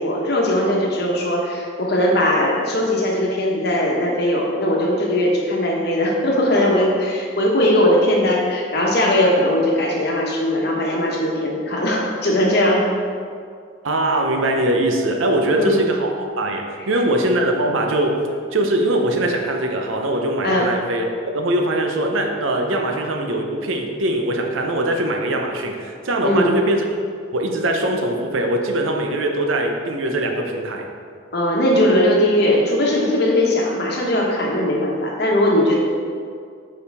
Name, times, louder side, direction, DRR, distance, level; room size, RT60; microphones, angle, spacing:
voice 1, 0.0-12.9 15.5-15.8 20.4-20.7 26.2-26.5 31.3-35.8, left 1 dB, 50° left, -2 dB, 1.1 m, -19 dB
voice 2, 13.8-21.1 21.3-26.8 27.3-30.8, right 1 dB, 75° right, 3 dB, 0.7 m, -21 dB
7.1 x 4.9 x 3.5 m, 2.2 s
head